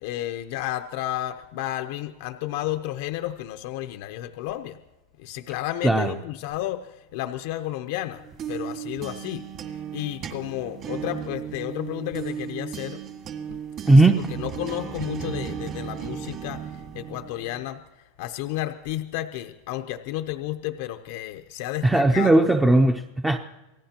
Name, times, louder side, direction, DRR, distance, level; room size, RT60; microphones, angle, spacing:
voice 1, 0.0-4.8 5.2-13.0 13.8-14.0 14.3-22.5, left 14 dB, 60° left, 7 dB, 0.7 m, -32 dB
sound 1, 8.1-17.7, right 8 dB, 35° right, 1.8 m, -35 dB
voice 2, 13.9-14.2 21.8-23.4, right 2 dB, 5° right, 5 dB, 0.7 m, -17 dB
27.0 x 17.5 x 2.9 m, 1.1 s
supercardioid pair, 140°, 0 cm